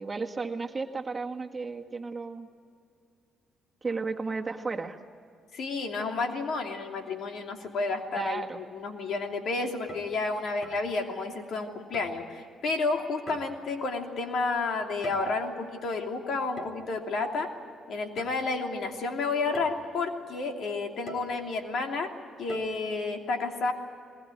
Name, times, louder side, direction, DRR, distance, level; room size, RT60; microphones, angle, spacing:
voice 1, 0.0-2.5 3.8-5.0 8.1-8.6, right 4 dB, 25° right, 3 dB, 1.8 m, -33 dB
voice 2, 5.5-17.5 17.9-22.1 22.4-23.7, left 3 dB, 65° left, 3 dB, 2.9 m, -31 dB
sound 1, 9.8-10.2 10.6-10.9 11.9-12.3 13.3-13.8 14.8-15.5 16.6-16.9 18.2-18.3 18.9-19.0 19.5-19.9 21.1-21.4 22.5-22.7, equal, 45° left, 3.9 m, -42 dB
21.0 x 20.0 x 9.4 m, 2.4 s
cardioid pair, 90°, 0 cm